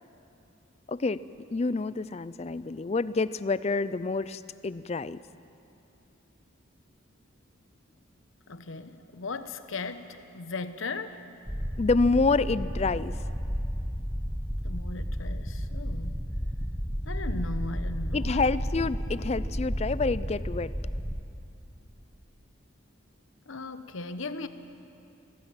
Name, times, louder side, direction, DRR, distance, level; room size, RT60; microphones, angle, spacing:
voice 1, 0.9-1.2 1.5-5.2 11.8-13.2 18.1-20.7, left 3 dB, 30° left, 16 dB, 0.4 m, -27 dB
voice 2, 8.5-11.2 14.6-16.2 17.0-18.4 23.5-24.5, left 3 dB, 70° left, 10 dB, 1.0 m, -37 dB
sound 1, 11.5-21.2, equal, ahead, 0.7 m, -32 dB
18.5 x 16.5 x 8.9 m, 2.7 s
head